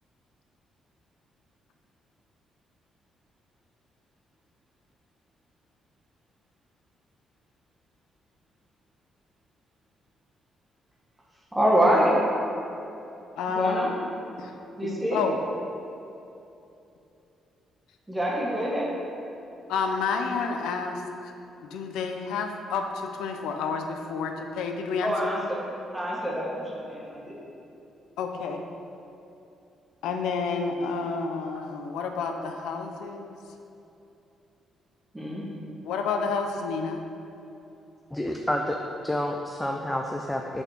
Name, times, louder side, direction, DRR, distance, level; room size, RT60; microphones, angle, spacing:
voice 1, 11.5-12.2 13.5-13.9 14.8-15.2 18.1-18.9 25.0-25.7 25.9-27.4 35.1-35.4, equal, 10° right, -4 dB, 1.5 m, -25 dB
voice 2, 13.4-13.8 14.4-14.5 14.8-15.4 19.7-21.3 21.6-25.1 28.2-28.6 30.0-33.4 35.8-37.0, left 5 dB, 90° left, 4 dB, 0.4 m, -30 dB
voice 3, 38.1-38.8 39.0-40.6, left 1 dB, 10° left, 2 dB, 0.4 m, -29 dB
5.4 x 4.3 x 4.4 m, 2.9 s
cardioid pair, 90°, 0 cm